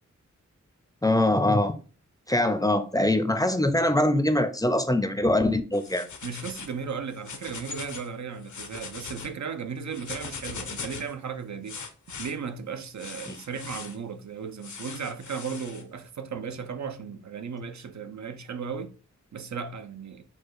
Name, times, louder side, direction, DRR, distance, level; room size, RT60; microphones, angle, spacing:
voice 1, 1.0-1.7 2.3-6.0 13.3-13.4, left 1 dB, 10° left, 0.5 m, -23 dB
sound 1, 5.7-6.8 7.1-8.1 8.4-9.3 9.9-11.1 11.7-12.3 13.0-14.0 14.6-15.8, left 5 dB, 75° left, 0.7 m, -40 dB
voice 2, 6.2-11.8 12.2-18.9 19.3-20.2, right 6 dB, 70° right, 0.5 m, -36 dB
4.5 x 2.3 x 4.6 m
wide cardioid pair, 65°, 30 cm